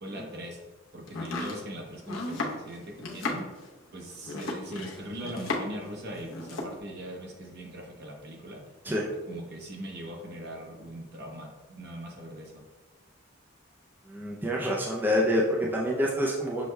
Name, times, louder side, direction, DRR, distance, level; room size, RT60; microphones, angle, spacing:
voice 1, 0.0-0.6 0.9-3.5 3.9-8.6 9.3-12.5, right 1 dB, 55° right, 1 dB, 0.8 m, -40 dB
Domestic sounds home sounds, 1.1-5.9 6.1-6.8, left 2 dB, 75° left, 0.7 m, -35 dB
voice 2, 14.1-16.7, equal, 10° right, -3 dB, 0.4 m, -27 dB
6.2 x 2.2 x 3.2 m, 1.2 s
head